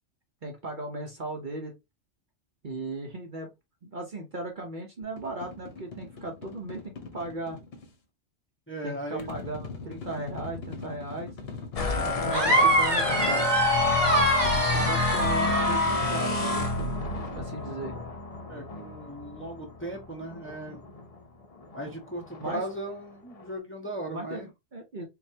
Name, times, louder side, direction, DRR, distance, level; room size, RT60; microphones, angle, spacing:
voice 1, 0.4-1.7 2.6-3.5 3.8-7.6 8.8-11.4 12.0-12.5 12.8-13.0 14.7-16.7 17.4-18.0 22.4-22.6 24.1-25.0, right 2 dB, 45° right, 0.9 m, -37 dB
sound 1, 5.0-7.9 9.2-12.9 14.5-17.4, left 4 dB, 55° left, 1.1 m, -42 dB
voice 2, 8.7-9.3 12.0-12.5 14.8-15.0 17.6-17.9 18.5-20.8 21.7-24.5, right 1 dB, 10° left, 1.0 m, -37 dB
sound 2, 11.8-21.1 21.6-21.9 22.3-22.7, left 3 dB, 35° left, 0.7 m, -28 dB
sound 3, 12.3-16.7, right 2 dB, 20° right, 1.2 m, -26 dB
4.0 x 3.3 x 2.8 m
omnidirectional pair, 1.3 m